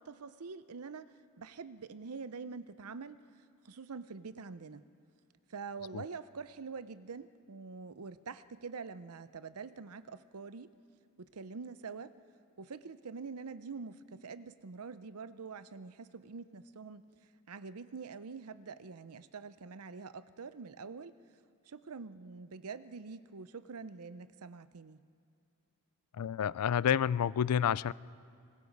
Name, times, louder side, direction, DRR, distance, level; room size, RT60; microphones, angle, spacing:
voice 1, 0.0-3.2 3.6-4.9 5.5-10.7 11.2-12.1 12.6-17.0 17.5-21.1 21.7-25.0, right 5 dB, 75° right, 14 dB, 0.7 m, -45 dB
voice 2, 26.1-27.9, left 8 dB, 85° left, 20 dB, 0.4 m, -29 dB
25.0 x 20.5 x 5.3 m, 2.4 s
head